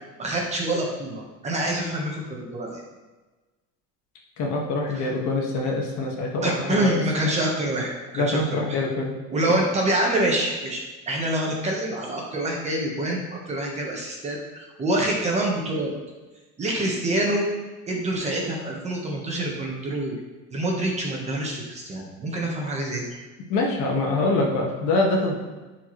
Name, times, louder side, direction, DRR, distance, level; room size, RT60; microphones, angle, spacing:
voice 1, 0.2-2.8 4.9-5.1 6.4-8.8 9.3-15.9 16.6-17.5 17.9-20.2 20.5-23.1, right 1 dB, 20° right, -1 dB, 1.2 m, -26 dB
voice 2, 4.4-7.3 8.1-9.2 23.5-25.3, left 2 dB, 65° left, -1 dB, 1.7 m, -25 dB
12.5 x 4.6 x 3.2 m, 1.2 s
cardioid pair, 175°, 31 cm